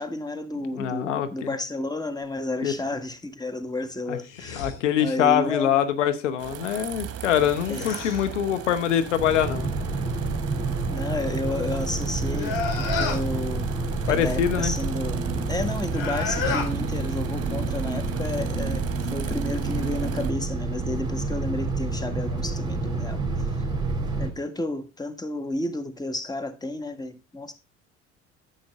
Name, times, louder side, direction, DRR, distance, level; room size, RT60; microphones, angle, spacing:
voice 1, 0.0-4.7 5.0-5.9 7.7-7.8 10.9-13.7 14.1-18.8 19.1-23.5 24.2-27.5, left 2 dB, 10° left, 1.6 m, -32 dB
voice 2, 0.8-1.5 2.6-2.7 4.1-4.2 4.6-9.7 14.1-14.7, left 9 dB, 85° left, 1.0 m, -24 dB
sound 1, 4.2-4.8 7.3-8.3 12.3-13.3 15.8-16.7, left 5 dB, 65° left, 2.8 m, -31 dB
sound 2, 6.4-20.3, right 10 dB, 40° right, 1.2 m, -37 dB
sound 3, 9.1-24.3, right 3 dB, 10° right, 2.9 m, -29 dB
9.9 x 8.0 x 3.6 m
hypercardioid pair, 65°, 35 cm